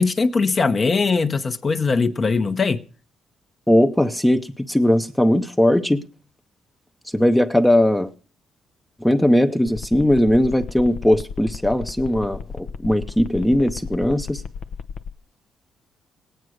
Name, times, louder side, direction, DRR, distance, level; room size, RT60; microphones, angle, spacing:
voice 1, 0.0-2.8, left 4 dB, 35° left, 0.9 m, -20 dB
voice 2, 3.7-6.0 7.1-8.1 9.0-14.4, left 1 dB, 5° left, 0.7 m, -19 dB
sound 1, 9.7-15.1, left 6 dB, 65° left, 0.7 m, -33 dB
17.5 x 9.2 x 6.4 m
cardioid pair, 90°, 0 cm